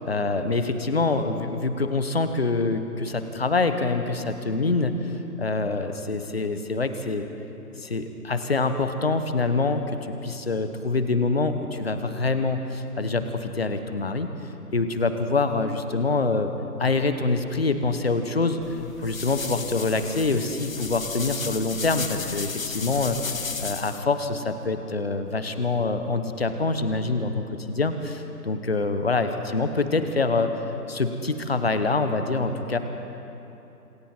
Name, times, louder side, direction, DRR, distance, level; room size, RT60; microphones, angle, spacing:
voice 1, 0.0-4.9 5.4-7.3 7.8-14.3 14.7-16.5 16.8-18.6 19.0-30.5 30.9-32.8, left 3 dB, 40° left, 8 dB, 1.1 m, -25 dB
sound 1, 18.6-24.0, left 5 dB, 55° left, 1.0 m, -34 dB
27.5 x 22.0 x 4.5 m, 3.0 s
figure-of-eight pair, 170°, 47 cm